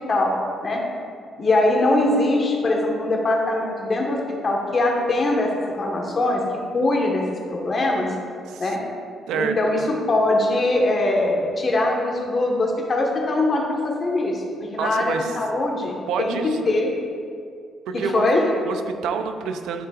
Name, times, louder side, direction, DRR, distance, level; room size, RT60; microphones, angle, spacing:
voice 1, 0.1-0.8 1.4-4.2 4.4-6.4 6.7-7.2 7.5-8.1 8.6-8.8 9.3-9.8 10.1-14.4 14.7-16.4 16.7-16.9 17.9-18.5, left 2 dB, 40° left, -1 dB, 1.4 m, -22 dB
voice 2, 9.3-9.9 14.8-15.4 16.1-16.7 17.9-18.3 18.7-19.9, right 6 dB, 90° right, 7 dB, 0.5 m, -28 dB
10.5 x 5.7 x 2.5 m, 2.3 s
cardioid pair, 90°, 0 cm